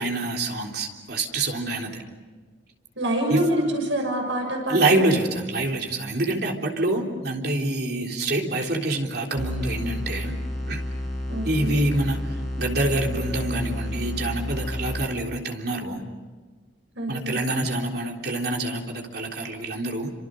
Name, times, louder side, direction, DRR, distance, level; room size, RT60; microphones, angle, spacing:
voice 1, 0.0-2.0 3.3-3.5 4.7-10.3 10.7-10.8 11.4-16.0 17.1-20.1, right 2 dB, 55° right, 1 dB, 3.6 m, -26 dB
voice 2, 3.0-5.0 8.0-8.2 11.3-11.8 16.9-17.5, right 1 dB, 85° right, 1 dB, 6.8 m, -27 dB
sound 1, 9.4-15.4, left 1 dB, ahead, 6.5 m, -31 dB
29.5 x 26.5 x 6.5 m, 1.4 s
head